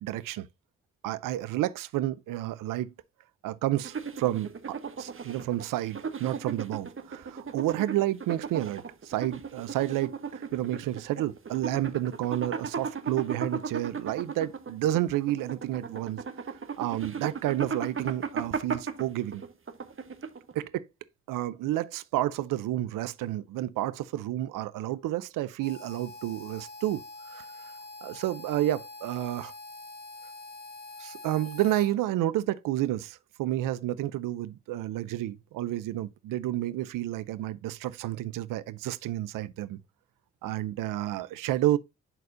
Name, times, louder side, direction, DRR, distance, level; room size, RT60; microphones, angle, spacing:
voice 1, 0.0-0.5 1.0-2.9 3.4-16.2 16.8-19.4 20.5-20.9 21.3-27.7 28.0-29.5 31.0-39.8 40.4-41.8, right 14 dB, 75° right, 0.5 m, -30 dB
sound 1, 3.8-20.6, right 5 dB, 40° right, 1.1 m, -36 dB
Harmonica, 25.6-31.9, left 3 dB, 30° left, 1.6 m, -45 dB
11.0 x 4.2 x 2.5 m
hypercardioid pair, 40°, 33 cm